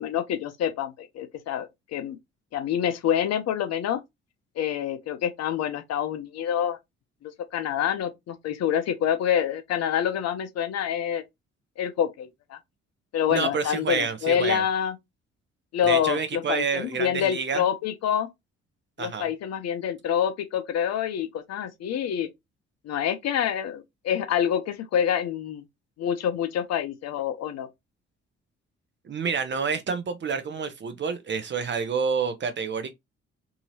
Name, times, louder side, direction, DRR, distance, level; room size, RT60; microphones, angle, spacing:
voice 1, 0.0-2.2 2.5-4.0 4.6-6.8 7.2-11.2 11.8-12.6 13.1-15.0 15.7-18.3 19.0-22.3 22.8-25.6 26.0-27.7, left 9 dB, 50° left, 0.6 m, -27 dB
voice 2, 13.3-14.6 15.9-17.6 19.0-19.3 29.0-32.9, right 5 dB, 35° right, 0.7 m, -28 dB
2.8 x 2.7 x 2.7 m
figure-of-eight pair, 45°, 33 cm